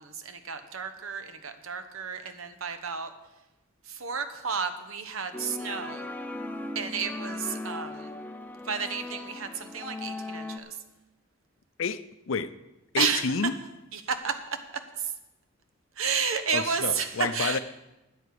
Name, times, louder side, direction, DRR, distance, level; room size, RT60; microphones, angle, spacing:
voice 1, 0.0-3.1 3.9-6.1 6.7-8.1 8.6-10.8 13.0-13.2 13.9-14.3 15.0-15.1 16.0-17.6, right 6 dB, 75° right, 1.1 m, -31 dB
sound 1, 5.3-10.6, left 2 dB, 10° left, 0.6 m, -38 dB
voice 2, 11.8-12.5 12.9-13.5 16.5-17.6, left 5 dB, 65° left, 0.5 m, -29 dB
13.5 x 8.7 x 4.8 m
head